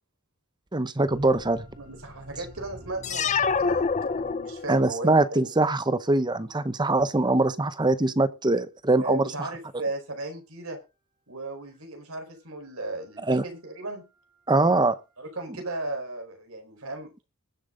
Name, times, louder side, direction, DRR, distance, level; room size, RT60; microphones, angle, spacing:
voice 1, 0.7-1.6 4.7-9.5 13.3-13.4 14.5-15.0, right 2 dB, 20° right, 0.8 m, -23 dB
sound 1, 1.0-6.5 7.7-8.7 9.1-9.2 11.7-11.8 12.2-15.3, equal, 35° right, 5.9 m, -50 dB
voice 2, 1.8-3.3 3.6-5.4 9.0-10.8 11.3-14.0 15.2-17.1, right 2 dB, 70° right, 4.7 m, -36 dB
sound 2, 3.0-4.9, left 5 dB, 35° left, 0.5 m, -26 dB
21.0 x 7.5 x 3.9 m
head